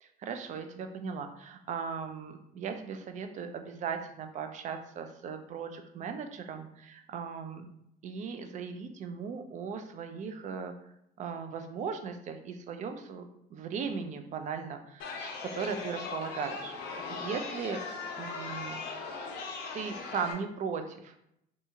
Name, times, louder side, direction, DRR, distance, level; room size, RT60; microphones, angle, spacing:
voice 1, 0.0-7.7 8.0-10.7 11.2-17.8 18.2-18.8 19.7-21.4, right 6 dB, 45° right, 7 dB, 0.4 m, -38 dB
Chatter, 15.0-20.3, left 4 dB, 75° left, 0.6 m, -39 dB
2.7 x 2.3 x 2.6 m, 0.77 s
cardioid pair, 110°, 17 cm